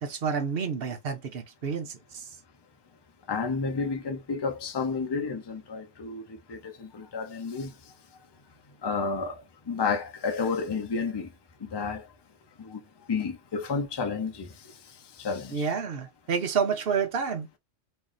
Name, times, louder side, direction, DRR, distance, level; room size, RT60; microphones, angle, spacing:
voice 1, 0.0-2.2 15.5-17.5, right 6 dB, 55° right, 0.9 m, -29 dB
voice 2, 3.3-6.2 6.5-7.7 8.8-9.4 9.7-11.3 11.6-12.0 12.6-12.8 13.1-14.5 15.2-15.7, left 5 dB, 30° left, 0.5 m, -31 dB
3.2 x 2.5 x 3.8 m
omnidirectional pair, 1.3 m